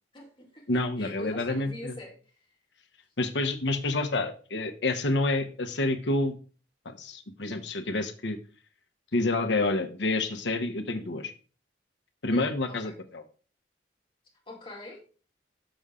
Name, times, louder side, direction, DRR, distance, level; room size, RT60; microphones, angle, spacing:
voice 1, 0.1-2.2 12.3-12.9 14.5-15.0, left 2 dB, 30° left, -1 dB, 2.1 m, -44 dB
voice 2, 0.7-2.0 3.2-6.4 6.8-8.4 9.1-11.3 12.2-13.2, left 2 dB, 75° left, 6 dB, 1.0 m, -28 dB
6.8 x 6.2 x 3.7 m, 0.38 s
head